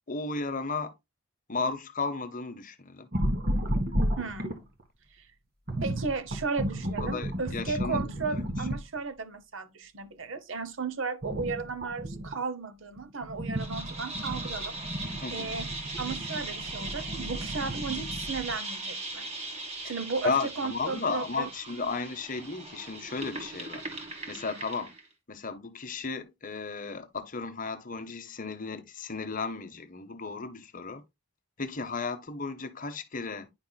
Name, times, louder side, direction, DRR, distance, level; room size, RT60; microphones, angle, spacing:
voice 1, 0.1-0.9 1.5-3.1 7.0-8.5 15.2-15.5 19.8-19.9 20.2-23.8 24.3-24.9 25.3-31.0 31.6-33.5, left 4 dB, 40° left, 0.8 m, -34 dB
sound 1, 3.1-4.8 5.7-9.0 11.2-12.5 13.0-18.5, equal, 45° right, 1.5 m, -32 dB
voice 2, 4.2-4.7 5.1-5.3 5.8-14.8 15.3-15.7 16.0-21.5, right 4 dB, 60° right, 0.8 m, -35 dB
sound 2, 13.5-25.1, right 2 dB, 30° right, 1.5 m, -39 dB
9.6 x 5.6 x 2.2 m
head